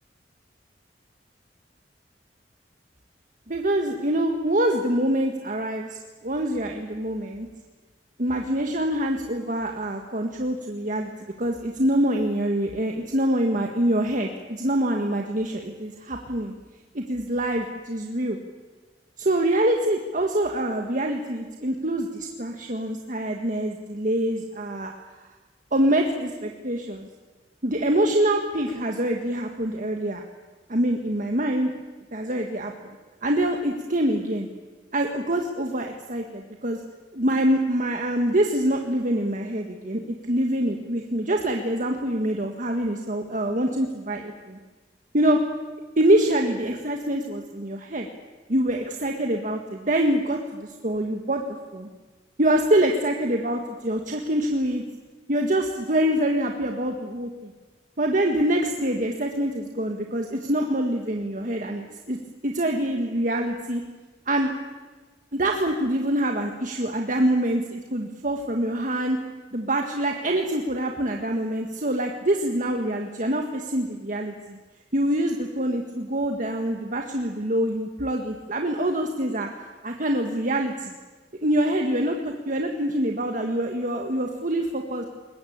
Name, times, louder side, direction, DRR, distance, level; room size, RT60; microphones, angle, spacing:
voice 1, 3.5-7.5 8.2-11.1 11.4-16.5 16.9-18.4 19.2-24.9 25.7-27.1 27.6-30.2 30.7-31.7 32.1-32.9 33.2-34.5 34.9-36.8 37.1-44.6 45.1-45.4 46.0-48.1 48.5-51.4 51.7-51.9 52.4-54.8 55.3-57.5 58.0-62.2 62.4-63.8 64.3-64.5 65.3-69.2 69.5-74.6 74.9-79.5 79.8-80.9 81.4-85.1, right 1 dB, 45° right, 3 dB, 1.8 m, -25 dB
22.0 x 20.0 x 8.8 m, 1.3 s
head